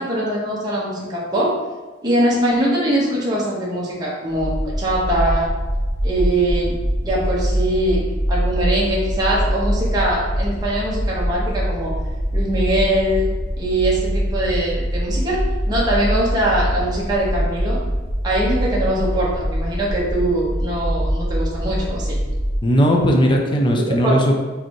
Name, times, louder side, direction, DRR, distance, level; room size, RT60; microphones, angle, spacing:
voice 1, 0.0-1.6 2.0-5.5 6.0-6.7 7.0-11.9 12.3-13.3 13.6-17.8 18.2-22.2 23.7-24.2, right 1 dB, 20° right, -6 dB, 1.2 m, -22 dB
sound 1, 4.3-22.6, equal, 75° right, 1.0 m, -23 dB
voice 2, 22.6-24.4, equal, 25° left, 1 dB, 0.5 m, -17 dB
5.0 x 3.4 x 3.0 m, 1.3 s
head